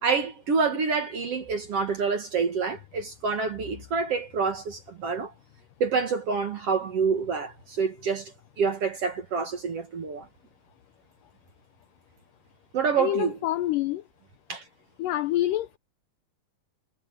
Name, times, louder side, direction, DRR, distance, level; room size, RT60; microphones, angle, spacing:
voice 1, 0.0-5.3 5.8-10.3 12.7-13.4 14.5-14.7, right 5 dB, 55° right, 1.9 m, -27 dB
voice 2, 13.0-14.0 15.0-15.8, left 14 dB, 85° left, 1.9 m, -27 dB
omnidirectional pair, 4.5 m